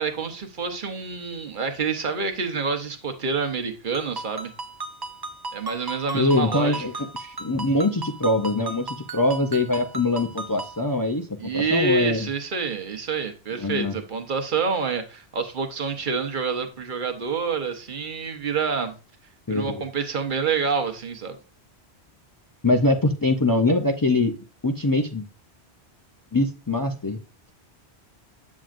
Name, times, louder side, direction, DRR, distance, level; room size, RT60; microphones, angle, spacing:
voice 1, 0.0-4.5 5.5-6.8 11.4-18.9 19.5-21.4, right 5 dB, 50° right, 5 dB, 1.0 m, -27 dB
Ringtone, 3.9-10.8, right 3 dB, 30° right, 0.5 m, -36 dB
voice 2, 6.1-11.3 11.5-12.3 13.6-13.9 19.5-19.8 22.6-24.3 24.6-25.3 26.3-27.2, left 2 dB, 35° left, 4 dB, 0.3 m, -23 dB
7.6 x 7.3 x 2.5 m, 0.32 s
omnidirectional pair, 1.1 m